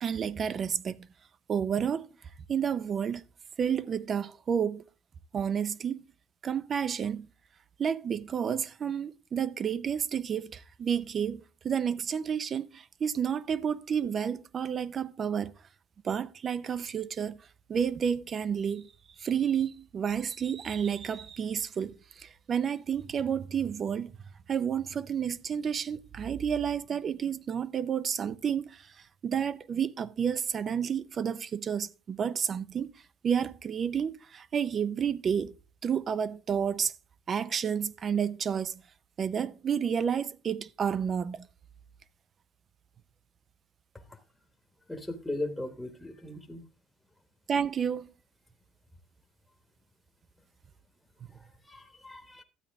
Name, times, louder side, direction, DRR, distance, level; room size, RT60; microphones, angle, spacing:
voice 1, 0.0-1.1 1.5-2.1 2.5-3.3 3.6-4.8 5.3-6.1 6.4-7.3 7.8-15.5 16.0-17.4 17.7-18.9 19.2-24.1 24.5-28.9 29.2-32.9 33.2-35.5 35.8-36.9 37.3-38.8 39.2-41.5 47.5-48.1, right 7 dB, 35° right, 0.5 m, -30 dB
voice 2, 44.9-46.6 51.3-52.4, left 2 dB, 5° left, 1.1 m, -38 dB
12.5 x 8.7 x 3.5 m
cardioid pair, 130°, 0 cm